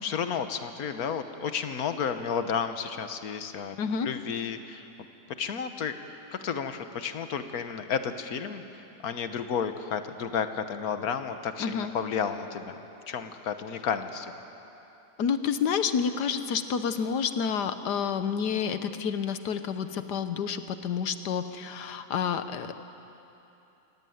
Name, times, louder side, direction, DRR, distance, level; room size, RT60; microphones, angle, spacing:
voice 1, 0.0-3.8 4.0-4.9 5.4-5.9 6.3-12.8 13.1-14.3, left 7 dB, 65° left, 9 dB, 1.5 m, -32 dB
voice 2, 3.8-4.1 11.6-11.9 15.2-22.7, left 7 dB, 85° left, 10 dB, 1.6 m, -29 dB
23.5 x 17.0 x 9.4 m, 2.9 s
omnidirectional pair, 1.7 m